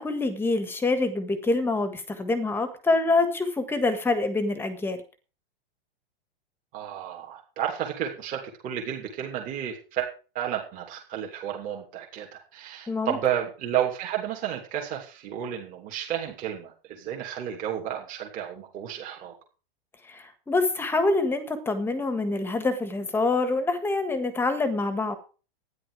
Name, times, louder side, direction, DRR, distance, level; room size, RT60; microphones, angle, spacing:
voice 1, 0.0-5.0 12.9-13.2 20.1-25.2, left 3 dB, 5° left, 10 dB, 1.5 m, -26 dB
voice 2, 6.7-10.1 10.3-19.3, right 10 dB, 25° right, 0 dB, 2.9 m, -32 dB
12.5 x 10.0 x 4.9 m, 0.35 s
supercardioid pair, 160°, 30 cm